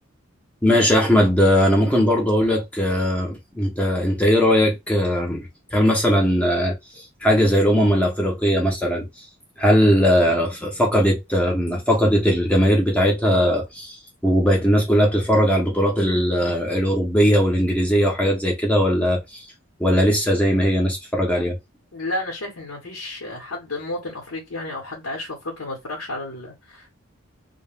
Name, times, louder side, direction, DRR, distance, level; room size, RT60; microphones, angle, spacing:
voice 1, 0.6-9.1 9.6-19.5 19.8-21.6, equal, 5° left, 0.6 m, -19 dB
voice 2, 21.9-26.9, left 2 dB, 80° left, 0.9 m, -32 dB
2.2 x 2.1 x 3.2 m
head